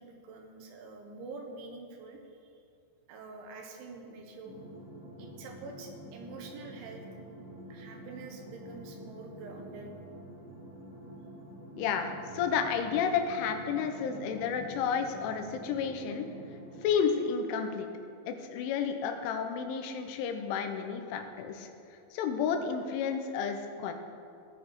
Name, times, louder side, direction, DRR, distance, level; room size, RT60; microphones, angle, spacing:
voice 1, 0.0-2.2 3.1-4.6 5.2-7.1 7.7-9.9 14.1-14.5, right 3 dB, 80° right, 3 dB, 3.6 m, -46 dB
sound 1, 4.4-16.9, right 1 dB, 40° right, 2.1 m, -47 dB
voice 2, 11.8-16.3 16.8-17.9 18.3-21.7 22.1-23.9, left 6 dB, 85° left, 5 dB, 3.4 m, -31 dB
17.5 x 7.9 x 4.8 m, 2.5 s
omnidirectional pair, 5.4 m